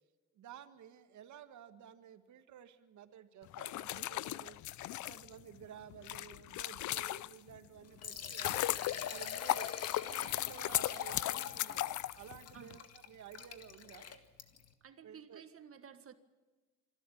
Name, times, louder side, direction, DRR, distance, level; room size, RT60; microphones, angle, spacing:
voice 1, 0.4-4.6 5.1-8.6 9.0-9.7 10.0-14.1 15.0-15.5, right 9 dB, 75° right, 10 dB, 1.6 m, -53 dB
sound 1, 3.5-7.6 8.1-12.8, left 15 dB, 75° left, 0.6 m, -37 dB
Liquid, 7.8-14.7, left 7 dB, 55° left, 1.9 m, -45 dB
voice 2, 14.8-16.1, right 7 dB, 45° right, 10 dB, 1.7 m, -53 dB
25.5 x 12.5 x 8.6 m, 1.3 s
cardioid pair, 90°, 30 cm